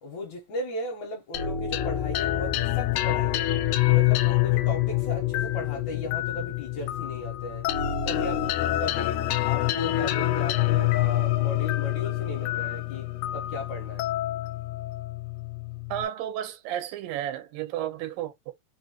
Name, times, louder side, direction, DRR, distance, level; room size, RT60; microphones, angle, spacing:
voice 1, 0.0-3.5 3.9-7.7 8.0-8.5 8.8-14.1, left 2 dB, 65° left, 2.2 m, -36 dB
sound 1, 1.3-16.0, left 14 dB, 80° left, 1.7 m, -26 dB
voice 2, 15.9-18.5, right 11 dB, 90° right, 2.5 m, -32 dB
5.3 x 2.7 x 2.9 m
omnidirectional pair, 4.0 m